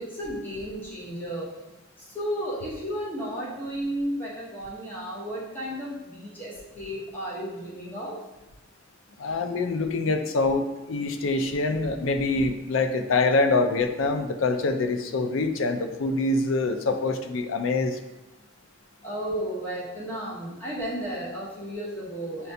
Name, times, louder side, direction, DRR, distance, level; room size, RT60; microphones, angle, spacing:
voice 1, 0.0-1.5 2.1-8.2 19.0-22.5, equal, 10° left, -7 dB, 0.8 m, -33 dB
voice 2, 9.2-18.0, left 3 dB, 75° left, 7 dB, 0.4 m, -25 dB
6.7 x 2.3 x 2.6 m, 0.99 s
head